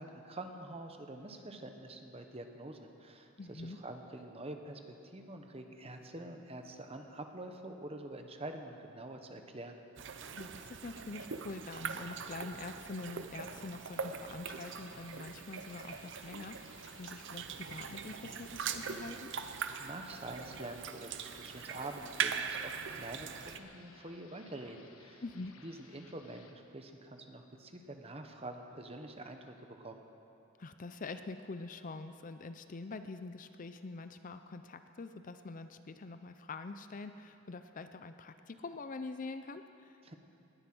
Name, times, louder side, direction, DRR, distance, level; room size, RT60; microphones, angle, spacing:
voice 1, 0.0-9.8 19.8-25.2 25.6-30.0 40.0-40.1, right 2 dB, 30° right, 5 dB, 1.1 m, -46 dB
voice 2, 3.4-3.8 10.3-19.3 25.2-25.5 30.6-40.0, left 3 dB, 40° left, 10 dB, 0.5 m, -45 dB
sound 1, 10.0-23.6, right 6 dB, 60° right, 0.7 m, -41 dB
sound 2, 14.5-26.5, left 4 dB, 80° left, 1.3 m, -61 dB
19.5 x 11.5 x 6.1 m, 2.7 s
head